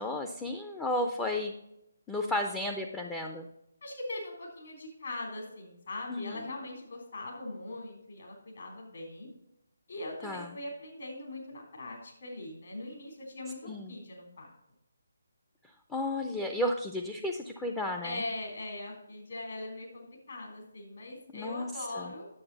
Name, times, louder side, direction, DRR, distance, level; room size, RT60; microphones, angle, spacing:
voice 1, 0.0-1.5 2.1-3.5 6.1-6.5 10.2-10.5 13.7-14.0 15.9-18.2 21.3-22.1, left 1 dB, 10° left, 2 dB, 0.6 m, -33 dB
voice 2, 3.8-9.3 9.9-14.5 18.0-22.3, left 2 dB, 60° left, 0 dB, 3.4 m, -41 dB
9.9 x 6.8 x 4.0 m, 0.83 s
figure-of-eight pair, 150°, 0 cm